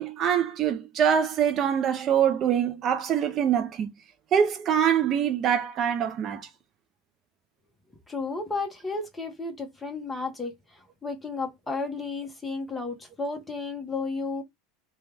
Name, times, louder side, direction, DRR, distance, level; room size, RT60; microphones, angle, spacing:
voice 1, 0.0-3.9 4.3-6.5, right 8 dB, 40° right, 0.5 m, -24 dB
voice 2, 8.1-10.5 11.0-14.4, left 3 dB, 10° left, 1.0 m, -32 dB
3.2 x 2.3 x 3.3 m
supercardioid pair, 120°, 0 cm